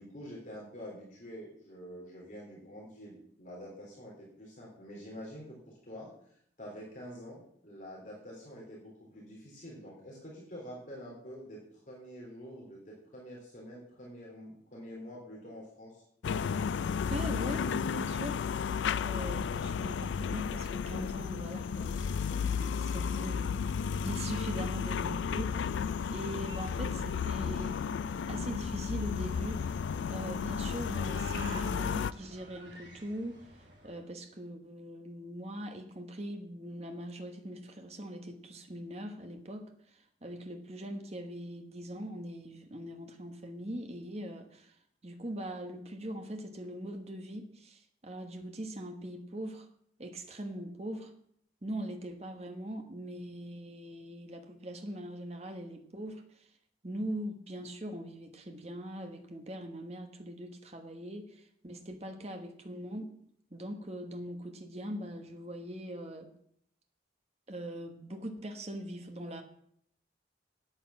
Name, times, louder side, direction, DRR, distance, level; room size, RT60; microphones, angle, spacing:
voice 1, 0.0-6.1 6.6-16.0, equal, 45° left, -4 dB, 3.5 m, -47 dB
sound 1, 16.2-32.1, left 6 dB, 80° left, 0.3 m, -33 dB
voice 2, 17.1-23.6 24.0-25.7 26.1-27.8 28.3-29.7 30.1-44.7 45.0-49.7 50.0-51.1 51.6-56.5 56.8-63.1 63.5-66.3 67.5-69.4, right 1 dB, 35° right, 5 dB, 1.3 m, -41 dB
sound 2, 25.4-34.0, right 1 dB, 70° right, 4.4 m, -51 dB
9.2 x 8.5 x 7.2 m, 0.68 s
head